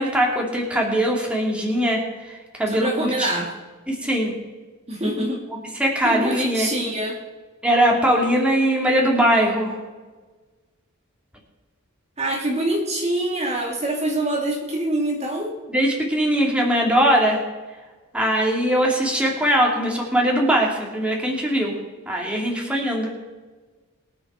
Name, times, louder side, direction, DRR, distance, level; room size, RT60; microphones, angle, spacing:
voice 1, 0.0-2.0 2.3-3.3 3.9-4.3 5.8-6.7 7.6-9.7 15.7-17.4 18.1-21.8 22.1-23.1, equal, 5° right, -2 dB, 2.6 m, -21 dB
voice 2, 2.7-3.5 4.9-5.4 6.0-7.2 12.2-15.5, right 1 dB, 30° right, -1 dB, 2.3 m, -25 dB
23.0 x 7.9 x 4.4 m, 1.3 s
head